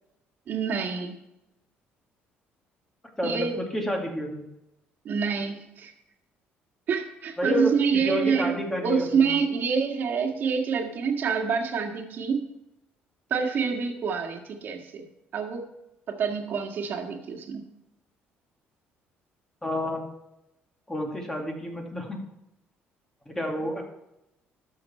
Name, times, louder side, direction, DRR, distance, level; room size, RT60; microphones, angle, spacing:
voice 1, 0.5-1.2 3.2-3.6 5.1-5.9 6.9-12.5 13.3-15.0 15.3-15.6 16.1-17.6, right 6 dB, 55° right, 3 dB, 1.8 m, -27 dB
voice 2, 3.2-4.4 7.4-9.3 19.6-20.0 20.9-22.2 23.3-23.8, left 1 dB, 10° left, 1 dB, 2.2 m, -30 dB
13.0 x 6.5 x 4.3 m, 0.90 s
cardioid pair, 120°, 4 cm